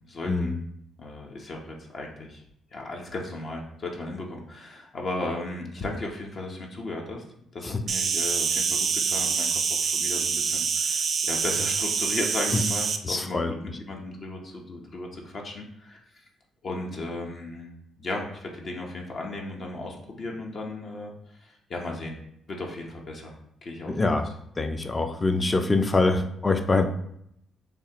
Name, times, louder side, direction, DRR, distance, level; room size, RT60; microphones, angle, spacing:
voice 1, 0.1-0.5 1.0-2.4 2.7-7.2 7.5-16.0 16.6-17.7 18.0-21.1 21.4-22.2 22.5-24.2, left 2 dB, 50° left, 0 dB, 0.9 m, -35 dB
Insect, 7.9-13.0, right 6 dB, 55° right, 0.4 m, -26 dB
voice 2, 13.0-13.5 23.9-24.3 24.6-26.9, left 3 dB, 25° left, 7 dB, 0.5 m, -24 dB
6.8 x 2.4 x 2.9 m, 0.72 s
cardioid pair, 90°, 0 cm